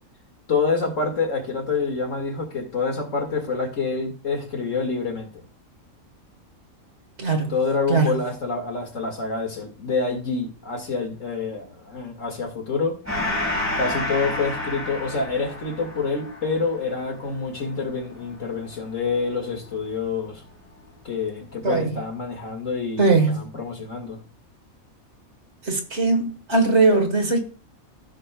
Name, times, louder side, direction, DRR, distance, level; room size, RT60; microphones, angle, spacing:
voice 1, 0.5-5.3 7.5-13.0 13.8-20.4 21.0-24.2, left 4 dB, 60° left, 2.4 m, -27 dB
voice 2, 7.2-7.5 7.9-8.2 21.6-21.9 23.0-23.4 25.7-27.4, right 3 dB, 55° right, 1.7 m, -20 dB
Gong, 13.0-20.0, left 2 dB, 10° right, 3.5 m, -31 dB
15.0 x 6.5 x 2.2 m
omnidirectional pair, 1.5 m